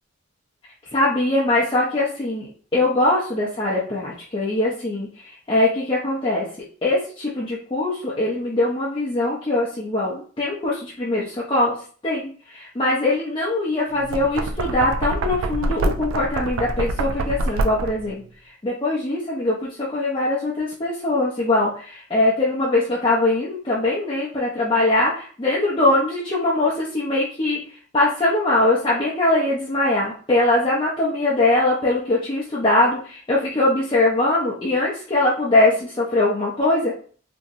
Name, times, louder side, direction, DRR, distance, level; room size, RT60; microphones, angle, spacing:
voice 1, 0.9-6.5 6.8-11.7 12.0-18.2 18.6-27.6 27.9-36.9, left 2 dB, 25° left, -7 dB, 0.5 m, -22 dB
Knock, 14.0-18.1, right 2 dB, 75° right, 0.3 m, -26 dB
2.8 x 2.6 x 2.4 m, 0.43 s
head